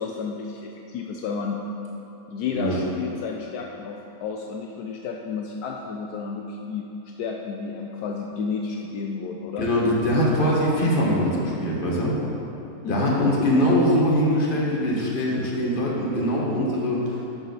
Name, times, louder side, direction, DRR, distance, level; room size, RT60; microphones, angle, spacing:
voice 1, 0.0-1.7 2.3-9.7 12.8-13.3, left 5 dB, 75° left, 1 dB, 1.1 m, -31 dB
voice 2, 9.6-12.2 12.9-17.3, equal, 35° left, -4 dB, 1.5 m, -22 dB
13.5 x 4.8 x 4.0 m, 2.9 s
omnidirectional pair, 1.7 m